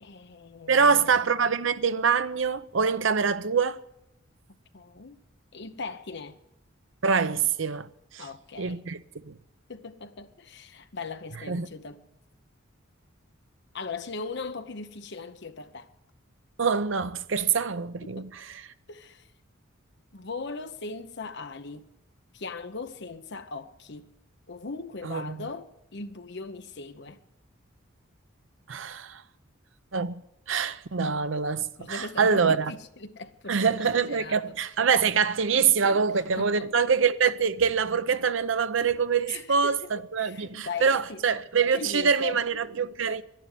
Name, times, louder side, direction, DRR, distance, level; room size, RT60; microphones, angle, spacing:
voice 1, 0.0-1.1 4.7-5.2 5.5-6.4 8.2-8.9 9.7-12.0 13.7-15.9 18.0-18.3 18.9-19.3 20.1-21.9 22.3-24.1 24.5-27.2 31.8-34.6 35.8-36.7 39.3-41.2 41.7-42.4, left 4 dB, 60° left, 0.9 m, -39 dB
voice 2, 0.7-3.8 7.0-7.9 8.1-8.3 8.6-9.0 9.2-9.4 11.5-11.7 16.6-18.3 25.0-25.4 28.7-29.2 29.9-30.2 30.5-32.7 33.5-43.2, right 6 dB, 70° right, 0.7 m, -25 dB
11.5 x 11.0 x 10.0 m
head